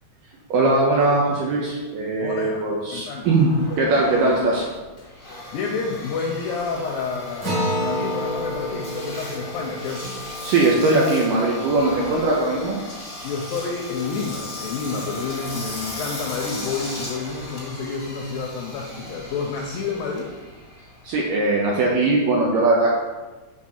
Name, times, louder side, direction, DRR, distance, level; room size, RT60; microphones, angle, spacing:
voice 1, 0.5-4.7 10.4-12.8 21.0-22.9, right 2 dB, 75° right, -2 dB, 2.1 m, -20 dB
voice 2, 2.2-2.6 2.9-3.3 3.7-4.0 5.5-10.2 13.2-20.3, left 5 dB, 80° left, 0 dB, 2.1 m, -29 dB
Engine, 3.2-21.7, left 2 dB, 35° left, 0.8 m, -37 dB
Acoustic guitar, 7.4-12.3, equal, 45° right, 3.9 m, -30 dB
7.2 x 4.6 x 5.8 m, 1.2 s
omnidirectional pair, 4.9 m